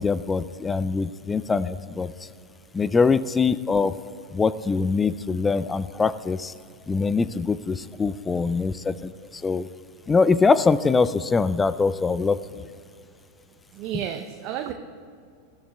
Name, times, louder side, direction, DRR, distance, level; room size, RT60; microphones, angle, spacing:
voice 1, 0.0-2.1 2.7-3.9 4.3-6.5 6.9-9.7 10.1-12.4, left 4 dB, 15° left, 16 dB, 0.3 m, -23 dB
voice 2, 13.7-14.7, right 10 dB, 45° right, 5 dB, 0.6 m, -31 dB
20.0 x 13.0 x 2.3 m, 2.3 s
figure-of-eight pair, 90°, 0 cm